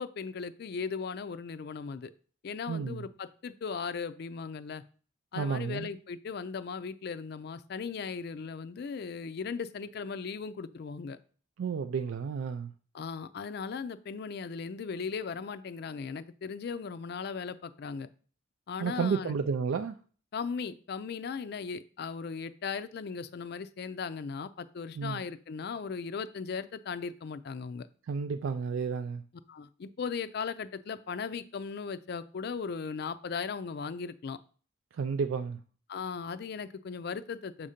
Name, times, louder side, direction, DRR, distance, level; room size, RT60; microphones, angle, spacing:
voice 1, 0.0-2.1 2.4-4.8 5.3-11.2 12.9-18.1 18.7-19.4 20.3-27.9 29.5-34.4 35.9-37.7, left 5 dB, 55° left, 0.4 m, -37 dB
voice 2, 2.7-3.1 5.3-5.9 11.6-12.7 18.8-20.0 25.0-25.2 28.1-29.2 34.9-35.6, right 5 dB, 85° right, 0.4 m, -31 dB
7.2 x 2.8 x 5.0 m
head